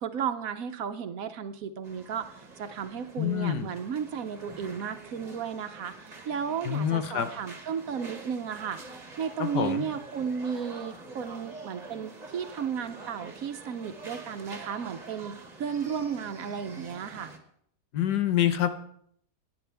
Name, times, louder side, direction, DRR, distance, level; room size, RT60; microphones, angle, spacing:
voice 1, 0.0-17.3, right 7 dB, 65° right, 10 dB, 1.1 m, -34 dB
sound 1, 1.8-17.4, right 3 dB, 25° right, 1.3 m, -46 dB
voice 2, 3.2-3.7 6.6-7.3 9.4-9.8 17.9-18.7, left 10 dB, 85° left, 9 dB, 1.5 m, -26 dB
18.0 x 10.0 x 3.4 m, 0.67 s
omnidirectional pair, 1.7 m